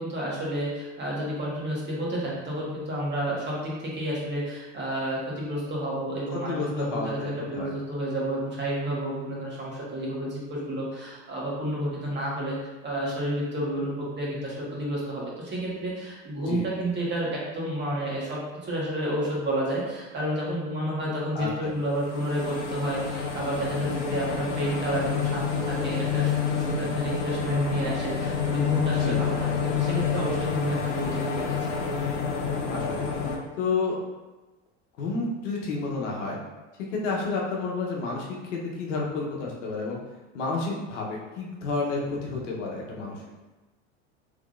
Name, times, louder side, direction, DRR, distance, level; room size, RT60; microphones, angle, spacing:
voice 1, 0.0-12.6 12.8-31.5, right 1 dB, 30° right, -5 dB, 1.5 m, -30 dB
voice 2, 6.3-7.7 16.5-16.6 21.3-21.7 29.0-29.2 32.7-33.1 33.6-34.0 35.0-36.4 36.9-40.0 40.3-43.2, left 3 dB, 80° left, -2 dB, 0.9 m, -30 dB
sound 1, 21.9-33.4, left 6 dB, 50° left, 0.8 m, -28 dB
3.6 x 3.5 x 2.4 m, 1.1 s
hypercardioid pair, 85°, 36 cm